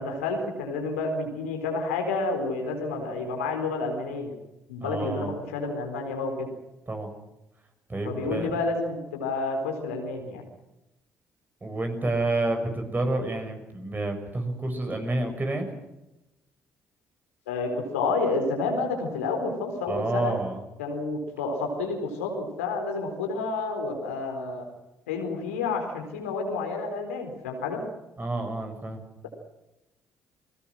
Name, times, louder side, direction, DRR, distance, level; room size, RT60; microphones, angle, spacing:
voice 1, 0.0-4.3 4.7-6.5 8.0-10.4 17.5-20.3 20.8-24.6 25.1-27.8, left 3 dB, 80° left, 3 dB, 4.2 m, -29 dB
voice 2, 4.8-5.3 6.9-7.1 7.9-8.5 11.6-15.7 19.9-20.6 28.2-29.0, right 2 dB, 25° right, 5 dB, 6.7 m, -29 dB
30.0 x 20.0 x 6.3 m, 0.94 s
hypercardioid pair, 45°, 7 cm